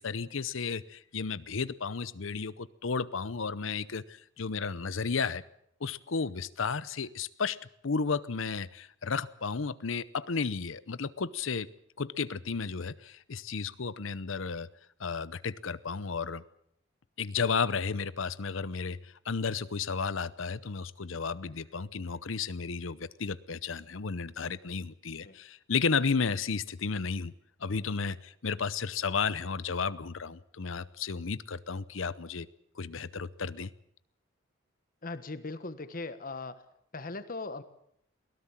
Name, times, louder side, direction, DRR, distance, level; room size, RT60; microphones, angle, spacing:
voice 1, 0.0-5.4 5.8-7.6 7.8-11.7 12.0-14.7 15.0-16.4 17.2-19.0 19.3-27.3 27.6-32.5 32.8-33.7, left 5 dB, 70° left, 17 dB, 0.8 m, -33 dB
voice 2, 35.0-36.6 36.9-37.6, left 3 dB, 45° left, 12 dB, 1.4 m, -39 dB
23.0 x 17.0 x 7.4 m, 0.71 s
head